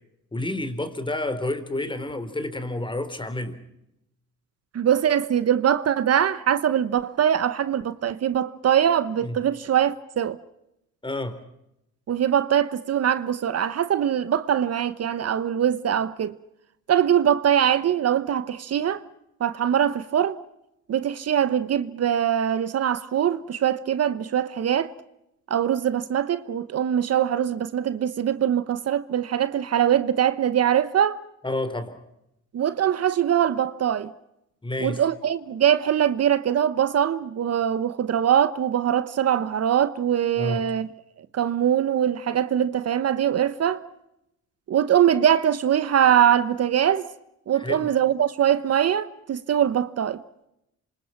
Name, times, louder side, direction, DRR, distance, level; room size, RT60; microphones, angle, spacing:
voice 1, 0.3-3.6 9.2-9.4 11.0-11.4 31.4-32.0 34.6-35.0 40.4-40.7 47.6-47.9, left 2 dB, 15° left, 4.0 m, -29 dB
voice 2, 4.7-10.4 12.1-16.3 16.9-19.0 19.4-20.4 20.9-24.9 25.5-31.2 32.5-34.1 34.8-40.9 41.3-43.8 44.7-47.1 47.5-50.2, right 9 dB, 55° right, 1.1 m, -22 dB
27.5 x 26.0 x 5.9 m
cardioid pair, 90°, 30 cm